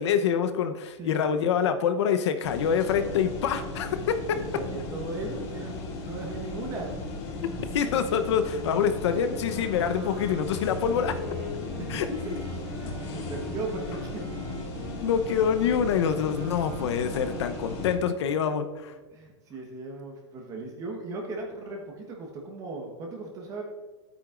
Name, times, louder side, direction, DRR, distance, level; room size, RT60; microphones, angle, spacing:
voice 1, 0.0-4.4 7.4-11.2 11.9-12.1 15.0-18.9, left 7 dB, 75° left, 8 dB, 0.8 m, -26 dB
sound 1, 2.4-17.9, left 2 dB, 35° left, 2.0 m, -36 dB
voice 2, 4.5-7.1 11.7-12.0 12.5-14.2 19.1-23.6, right 2 dB, 25° right, 1 dB, 1.2 m, -37 dB
Wind instrument woodwind instrument, 9.3-18.3, right 1 dB, 70° right, 2.0 m, -44 dB
12.5 x 8.9 x 2.5 m, 1.3 s
supercardioid pair, 160°, 15 cm